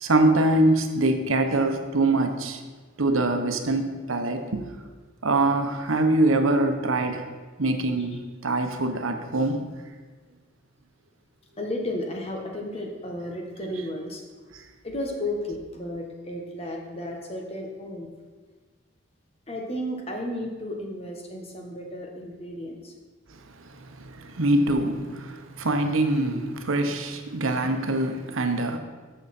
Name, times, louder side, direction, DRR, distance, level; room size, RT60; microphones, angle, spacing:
voice 1, 0.0-2.6 3.0-4.6 5.2-7.3 7.6-9.6 14.5-14.6 23.6-28.8, right 2 dB, 85° right, 6 dB, 1.0 m, -24 dB
voice 2, 11.6-14.2 14.8-18.1 19.5-22.9, left 1 dB, 30° left, 2 dB, 1.3 m, -33 dB
13.5 x 6.5 x 4.3 m, 1.4 s
head